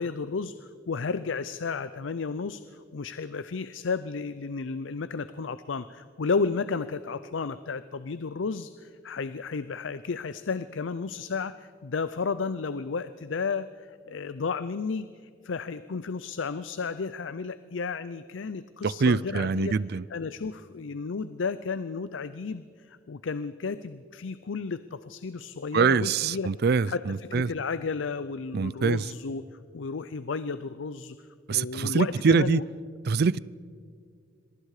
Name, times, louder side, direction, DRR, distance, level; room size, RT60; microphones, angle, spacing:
voice 1, 0.0-19.8 20.1-26.5 26.9-29.5 29.7-31.2 31.5-32.6, left 4 dB, 75° left, 0.6 m, -33 dB
voice 2, 18.8-20.0 25.7-27.5 28.5-29.0 31.5-32.6 33.1-33.4, right 5 dB, 55° right, 0.4 m, -24 dB
26.5 x 22.0 x 4.9 m
head